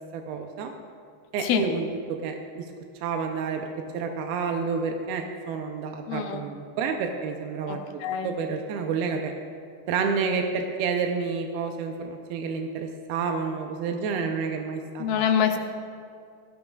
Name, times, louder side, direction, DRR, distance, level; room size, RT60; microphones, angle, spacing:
voice 1, 0.1-0.7 1.3-1.9 2.2-2.7 3.0-3.7 3.9-9.3 9.9-15.3, right 5 dB, 90° right, 4 dB, 2.7 m, -29 dB
voice 2, 6.1-6.5 7.7-8.3 15.0-15.6, left 8 dB, 85° left, 4 dB, 2.6 m, -25 dB
17.5 x 15.0 x 2.4 m, 2.3 s
omnidirectional pair, 4.3 m